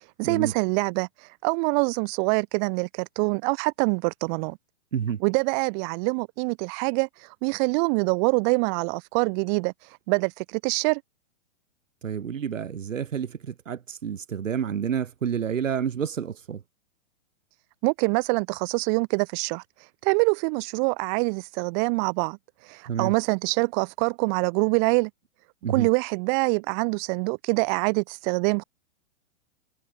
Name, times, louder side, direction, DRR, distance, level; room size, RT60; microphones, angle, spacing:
voice 1, 0.2-1.1 1.4-4.6 5.2-7.1 7.4-9.7 10.1-11.0 17.8-19.6 20.0-22.4 22.7-25.1 25.7-28.6, right 39 dB, 35° right, 1.9 m, -25 dB
voice 2, 12.0-16.6 22.9-23.1 25.6-25.9, right 8 dB, 85° right, 3.5 m, -29 dB
hypercardioid pair, 135°, 38 cm